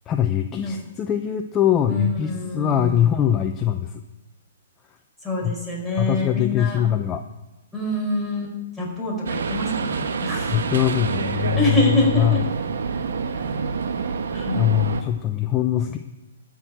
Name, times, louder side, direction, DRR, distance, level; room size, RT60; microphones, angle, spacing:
voice 1, 0.1-4.0 5.4-5.5 6.0-7.2 10.5-12.4 14.0-14.2 14.5-16.0, left 10 dB, 25° left, 6 dB, 0.7 m, -22 dB
voice 2, 1.9-3.1 5.2-6.8 7.7-10.5 11.4-12.4 13.2-13.4 14.3-14.7, left 1 dB, ahead, -4 dB, 5.2 m, -26 dB
sound 1, 9.3-15.0, right 5 dB, 70° right, 1.2 m, -27 dB
13.0 x 6.4 x 8.9 m, 1.0 s
hypercardioid pair, 125°, 0 cm